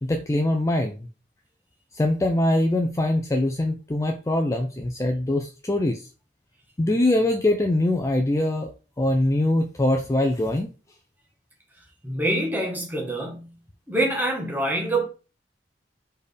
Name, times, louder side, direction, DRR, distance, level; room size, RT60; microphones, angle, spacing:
voice 1, 0.0-1.0 1.9-6.1 6.8-8.7 9.0-10.7, left 1 dB, 15° left, 0.4 m, -23 dB
voice 2, 12.0-13.5 13.9-15.1, right 1 dB, 10° right, 1.2 m, -25 dB
4.4 x 3.4 x 3.3 m
head